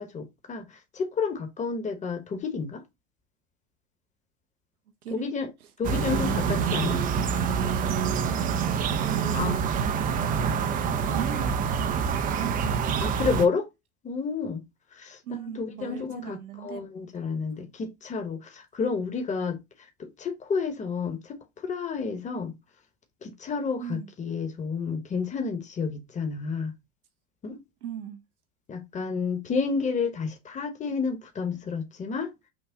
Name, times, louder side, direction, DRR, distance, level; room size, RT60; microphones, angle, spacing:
voice 1, 0.0-2.8 5.1-5.5 5.8-7.0 9.3-9.6 13.0-13.7 14.0-14.6 14.9-15.2 15.5-19.6 20.0-22.5 23.2-26.7 27.4-27.6 28.7-32.3, left 5 dB, 15° left, 1.0 m, -30 dB
voice 2, 5.0-5.3 6.3-6.5 9.0-13.1 15.2-16.8 23.8-24.1 27.8-28.2, right 9 dB, 80° right, 0.9 m, -39 dB
sound 1, 5.8-13.5, right 6 dB, 20° right, 0.4 m, -26 dB
6.1 x 2.3 x 3.6 m
hypercardioid pair, 95°, 44 cm